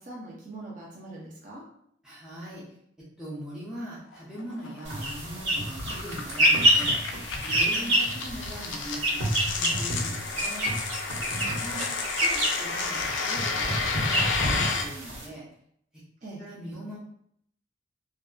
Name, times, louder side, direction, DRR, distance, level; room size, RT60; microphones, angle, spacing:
voice 1, 0.0-1.6 7.7-7.9 11.2-11.9 16.2-16.4, right 2 dB, 45° right, -4 dB, 0.6 m, -43 dB
voice 2, 2.0-2.6 3.2-7.0 7.4-10.7 11.4-11.8 12.2-15.4 16.4-17.0, equal, 5° right, -9 dB, 0.6 m, -41 dB
sound 1, 4.1-14.8, left 4 dB, 70° left, 0.4 m, -32 dB
sound 2, 4.9-15.3, right 1 dB, 70° right, 1.3 m, -27 dB
2.6 x 2.4 x 2.3 m, 0.70 s
head